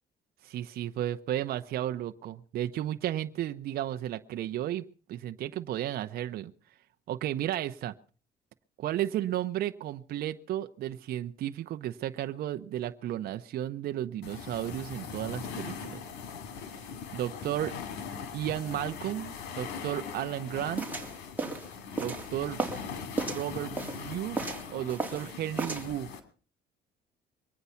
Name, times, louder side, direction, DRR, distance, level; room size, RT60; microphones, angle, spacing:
voice 1, 0.4-6.5 7.1-7.9 8.8-16.0 17.1-17.7 18.3-20.9 22.0-22.6 23.3-26.1, right 12 dB, 65° right, 8 dB, 0.8 m, -33 dB
sound 1, 14.2-26.2, left 6 dB, 85° left, 2.5 m, -41 dB
sound 2, 20.8-22.9 23.2-24.0 24.3-25.3 25.6-25.9, right 3 dB, 10° right, 3.1 m, -34 dB
23.0 x 9.5 x 5.8 m, 0.40 s
cardioid pair, 110°, 17 cm